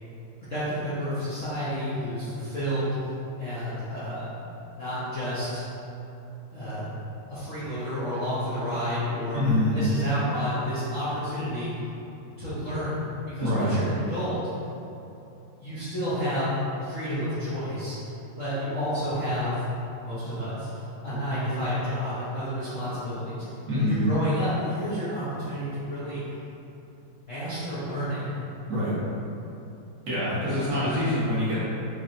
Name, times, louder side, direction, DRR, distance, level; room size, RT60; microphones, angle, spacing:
voice 1, 0.4-3.0 3.4-4.3 4.7-5.7 6.5-6.8 7.3-9.4 9.6-11.7 12.4-14.4 15.6-19.6 20.0-23.4 23.7-26.2 27.0-28.4, equal, 70° left, -13 dB, 0.7 m, -30 dB
voice 2, 9.3-9.8 13.4-13.7 23.7-24.0 28.7-28.9 30.1-31.6, left 1 dB, 55° right, -10 dB, 0.9 m, -25 dB
4.6 x 2.8 x 2.5 m, 2.8 s
omnidirectional pair, 2.4 m